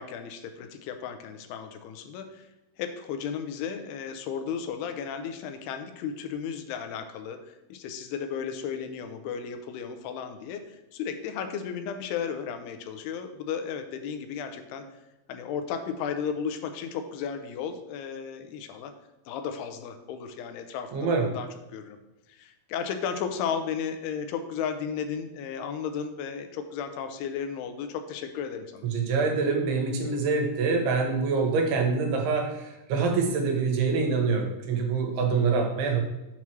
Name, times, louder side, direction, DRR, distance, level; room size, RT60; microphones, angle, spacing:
voice 1, 0.0-2.5 2.8-14.9 15.3-18.9 19.3-22.0 22.3-28.9, left 7 dB, 85° left, 8 dB, 2.6 m, -34 dB
voice 2, 20.9-21.3 28.9-36.0, right 4 dB, 80° right, 2 dB, 3.0 m, -25 dB
7.1 x 3.1 x 6.0 m, 0.98 s
omnidirectional pair, 4.6 m